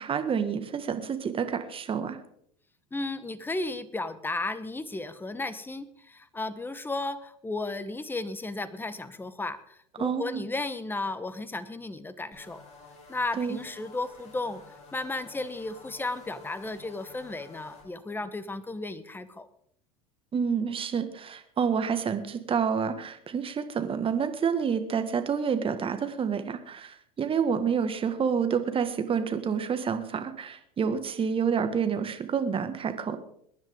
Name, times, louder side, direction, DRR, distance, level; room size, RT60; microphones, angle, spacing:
voice 1, 0.0-2.2 10.0-10.4 13.4-13.6 20.3-33.2, right 6 dB, 30° right, 9 dB, 1.9 m, -28 dB
voice 2, 2.9-12.6 13.1-14.6 14.9-19.5, left 2 dB, 10° left, 14 dB, 1.2 m, -34 dB
sound 1, 12.3-17.8, left 3 dB, 35° left, 7.4 m, -51 dB
22.5 x 10.5 x 3.8 m, 0.66 s
hypercardioid pair, 90°, 19 cm